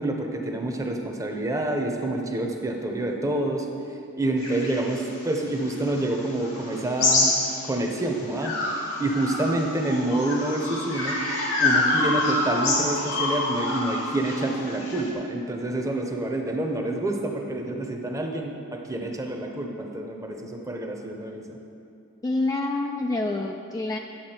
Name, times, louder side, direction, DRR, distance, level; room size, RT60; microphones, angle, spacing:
voice 1, 0.0-3.7 4.2-7.3 7.6-8.5 9.0-11.2 11.6-21.6, right 2 dB, 15° right, 2 dB, 0.8 m, -27 dB
sound 1, 4.4-8.0 8.4-15.1, left 2 dB, 70° left, 2.1 m, -27 dB
voice 2, 22.2-24.0, left 2 dB, 15° left, 2 dB, 0.3 m, -27 dB
10.5 x 7.2 x 4.4 m, 2.5 s
head